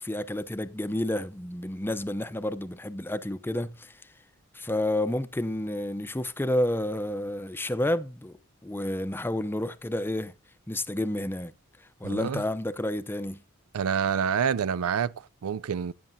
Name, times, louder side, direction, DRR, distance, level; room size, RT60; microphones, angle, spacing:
voice 1, 0.0-4.0 4.5-8.4 8.6-10.3 10.7-11.5 12.0-13.4, left 1 dB, 10° left, 0.6 m, -30 dB
voice 2, 12.0-12.4 13.7-15.9, right 7 dB, 85° right, 0.4 m, -27 dB
16.5 x 8.4 x 2.7 m
head